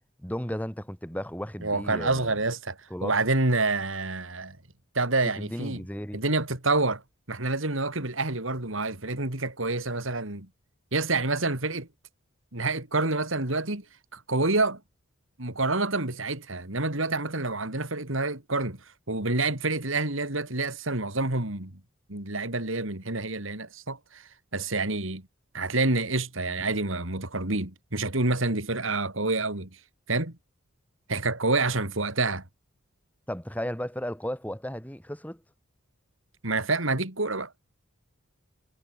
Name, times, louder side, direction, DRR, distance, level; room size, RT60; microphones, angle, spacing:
voice 1, 0.2-2.4 2.9-3.1 5.4-6.2 33.3-35.4, equal, 5° left, 4.5 m, -34 dB
voice 2, 1.6-4.6 5.0-5.8 6.1-7.0 7.3-10.5 10.9-11.9 12.5-13.8 14.1-14.8 15.4-18.8 19.1-21.7 22.1-25.2 25.5-29.7 30.1-30.3 31.1-32.4 36.4-37.5, right 2 dB, 70° right, 3.7 m, -28 dB
head